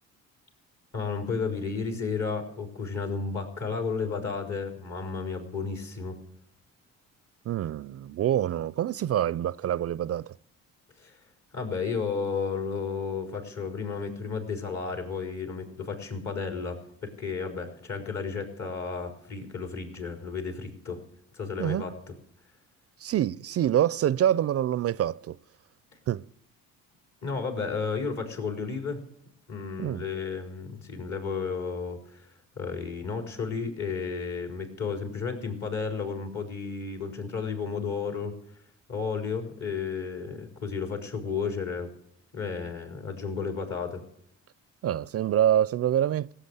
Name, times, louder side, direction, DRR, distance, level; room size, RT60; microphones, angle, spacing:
voice 1, 0.9-6.2 11.0-11.2 11.5-21.0 21.3-22.0 27.2-29.0 29.5-32.3 32.6-38.4 38.9-41.9 42.3-44.0, left 5 dB, 55° left, 4.3 m, -33 dB
voice 2, 7.5-10.3 21.6-21.9 23.0-25.4 26.1-26.3 29.8-30.0 44.8-46.3, right 11 dB, 45° right, 0.4 m, -26 dB
16.5 x 7.9 x 8.1 m
supercardioid pair, 65°, 33 cm